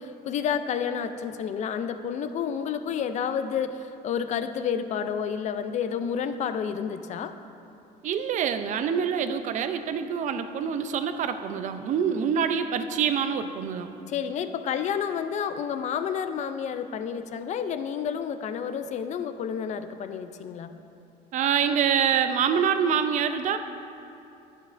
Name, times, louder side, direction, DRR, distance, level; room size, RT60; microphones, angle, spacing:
voice 1, 0.0-7.3 14.1-20.7, left 7 dB, 45° left, 10 dB, 0.4 m, -30 dB
voice 2, 8.0-13.9 21.3-23.6, right 7 dB, 45° right, 9 dB, 0.4 m, -25 dB
11.5 x 6.4 x 2.5 m, 2.8 s
cardioid pair, 140°, 17 cm